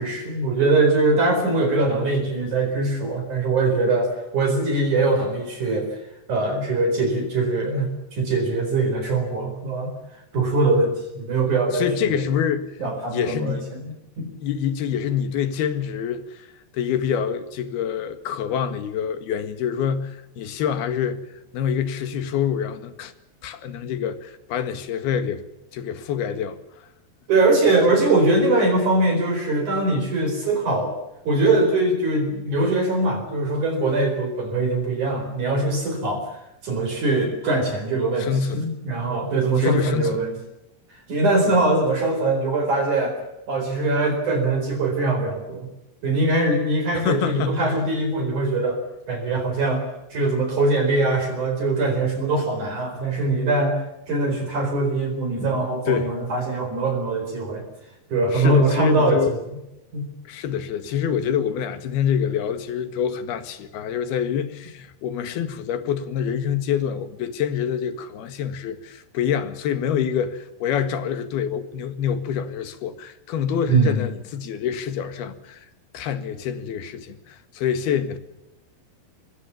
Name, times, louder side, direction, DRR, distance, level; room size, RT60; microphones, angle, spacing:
voice 1, 0.0-5.9 6.3-9.9 10.3-12.2 12.8-14.3 27.3-31.0 31.3-36.2 36.6-40.4 41.1-43.2 43.5-45.7 46.0-48.8 49.1-49.8 50.1-53.8 54.1-57.6 58.1-59.4 59.9-60.1 73.7-74.0, right 2 dB, 50° right, 5.6 m, -22 dB
voice 2, 11.7-12.8 13.1-13.7 14.4-16.5 16.7-21.3 21.5-23.1 23.4-25.4 25.7-26.6 27.9-28.0 38.2-38.7 39.6-40.3 41.5-41.6 46.9-47.8 55.9-56.2 58.3-59.3 60.3-75.7 75.9-78.2, left 8 dB, 70° left, 3.6 m, -26 dB
26.0 x 21.5 x 7.1 m
omnidirectional pair, 4.7 m